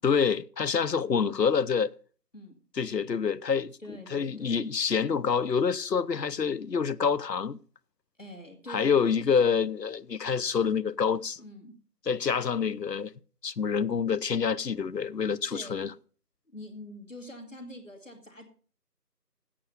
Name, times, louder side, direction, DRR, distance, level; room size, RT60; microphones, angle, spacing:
voice 1, 0.0-1.9 2.8-3.8 4.1-7.6 8.7-11.4 12.1-13.1 13.4-15.9, left 6 dB, 85° left, 0.7 m, -27 dB
voice 2, 3.8-4.6 8.2-9.7 11.4-11.8 15.5-15.9 16.5-18.5, left 1 dB, 50° left, 2.5 m, -45 dB
8.6 x 8.4 x 6.9 m
figure-of-eight pair, 180°, 48 cm